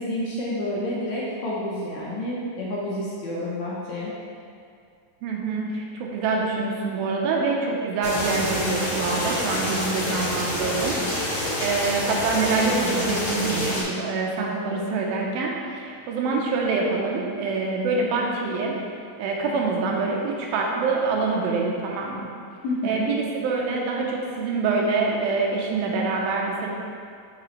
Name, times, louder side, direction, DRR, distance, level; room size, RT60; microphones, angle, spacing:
voice 1, 0.0-4.1 22.6-23.1, left 1 dB, 70° left, -6 dB, 1.8 m, -29 dB
voice 2, 5.2-18.7 19.2-22.3 22.8-26.7, right 3 dB, 90° right, -1 dB, 2.6 m, -25 dB
sound 1, 8.0-13.8, left 1 dB, 45° left, 2.4 m, -27 dB
7.5 x 6.0 x 3.3 m, 2.3 s
omnidirectional pair, 4.1 m